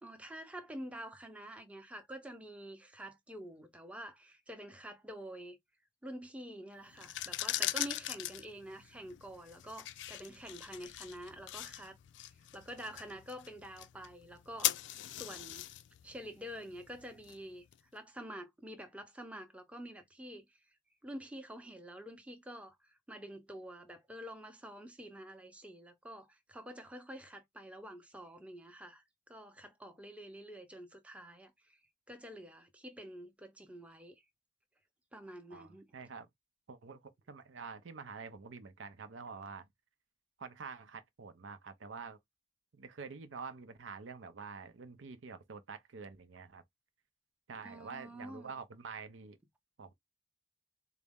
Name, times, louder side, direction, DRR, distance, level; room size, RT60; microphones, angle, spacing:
voice 1, 0.0-5.6 6.0-14.8 15.2-15.7 16.0-17.6 17.9-20.6 21.0-31.8 32.1-34.2 35.1-35.8 47.6-48.6, equal, 5° right, 0.6 m, -48 dB
sound 1, 6.9-17.8, left 14 dB, 70° left, 0.3 m, -40 dB
voice 2, 35.5-36.3 36.7-39.7 40.4-42.2 42.7-46.6 47.5-49.4 49.8-49.9, right 5 dB, 80° right, 0.6 m, -47 dB
4.0 x 2.0 x 3.5 m
head